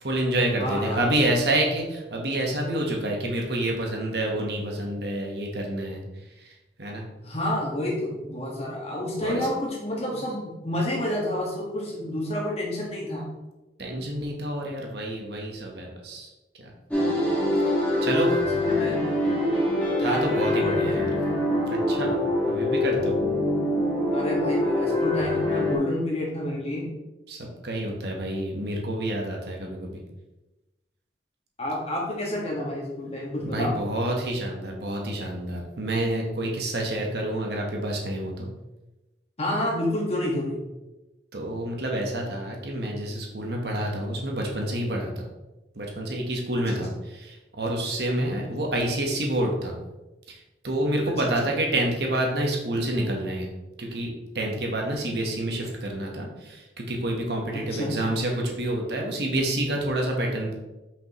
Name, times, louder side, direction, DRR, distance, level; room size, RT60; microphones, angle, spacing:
voice 1, 0.0-6.0 6.8-7.0 9.2-9.5 13.8-16.3 16.6-16.7 18.0-18.4 20.0-21.1 21.6-22.2 22.5-23.2 27.3-30.0 33.4-38.5 41.3-45.2 45.8-46.9 47.2-49.8 50.3-50.4 50.6-53.5 53.8-54.1 54.3-60.5, right 1 dB, 60° right, 0 dB, 1.1 m, -28 dB
voice 2, 0.6-1.1 7.2-13.2 18.6-19.1 20.0-21.0 24.1-26.9 31.6-33.8 39.4-40.6 46.7-46.8 51.2-51.3 57.5-57.9, left 1 dB, 35° left, -3 dB, 1.6 m, -29 dB
sound 1, 16.9-25.8, left 1 dB, 10° left, 1.6 m, -24 dB
6.0 x 5.3 x 3.0 m, 1.0 s
head